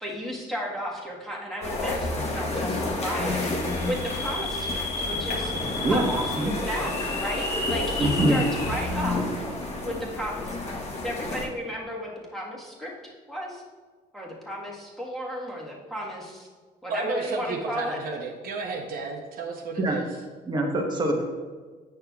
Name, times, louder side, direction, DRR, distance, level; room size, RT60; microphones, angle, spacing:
voice 1, 0.0-3.5 3.8-5.5 5.9-9.2 9.8-13.6 14.1-16.5 16.8-18.0, equal, ahead, -4 dB, 1.4 m, -34 dB
sound 1, 1.6-11.4, left 2 dB, 40° left, 1.1 m, -30 dB
sound 2, 3.5-8.9, left 3 dB, 65° left, 1.2 m, -33 dB
voice 2, 8.0-8.4 19.8-20.0 20.4-21.2, right 1 dB, 25° right, 1 dB, 1.1 m, -24 dB
voice 3, 16.9-20.1, right 3 dB, 60° right, 1 dB, 0.8 m, -32 dB
8.9 x 5.7 x 2.3 m, 1.4 s
cardioid pair, 110°, 17 cm